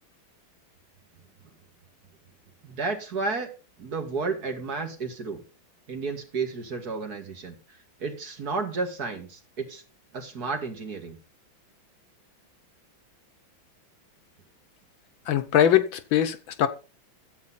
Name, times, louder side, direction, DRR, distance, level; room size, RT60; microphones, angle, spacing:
voice 1, 2.6-3.5 3.8-5.4 5.9-9.8 10.1-11.2, right 4 dB, 50° right, 2.3 m, -32 dB
voice 2, 15.3-16.7, left 10 dB, 75° left, 1.6 m, -22 dB
13.0 x 8.3 x 4.2 m
omnidirectional pair, 2.3 m